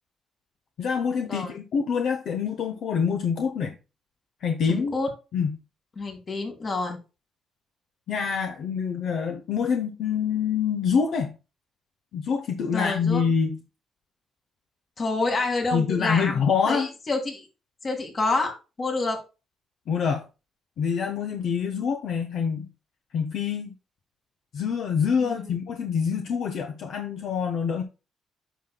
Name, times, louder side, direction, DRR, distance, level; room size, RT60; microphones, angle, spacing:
voice 1, 0.8-3.8 4.4-4.9 5.3-5.6 8.1-11.4 12.1-13.6 15.7-16.9 19.9-20.3 20.8-22.7 23.1-23.7 24.5-27.8, left 6 dB, 65° left, 0.8 m, -26 dB
voice 2, 4.7-5.1 6.0-7.0 12.7-13.2 15.0-17.5 17.8-19.2 25.2-25.5, left 3 dB, 40° left, 2.2 m, -28 dB
9.3 x 6.0 x 2.3 m
cardioid pair, 90°, 0 cm